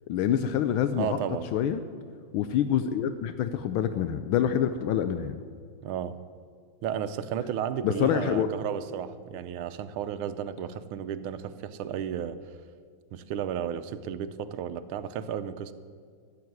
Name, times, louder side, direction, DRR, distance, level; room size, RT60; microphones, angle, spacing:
voice 1, 0.1-1.2 1.5-1.8 2.3-5.4 7.8-8.5, left 9 dB, 80° left, 10 dB, 1.4 m, -26 dB
voice 2, 0.9-1.5 5.8-6.2 6.8-12.5 13.1-15.7, right 9 dB, 85° right, 11 dB, 1.5 m, -33 dB
13.5 x 7.7 x 9.4 m, 2.1 s
omnidirectional pair, 2.3 m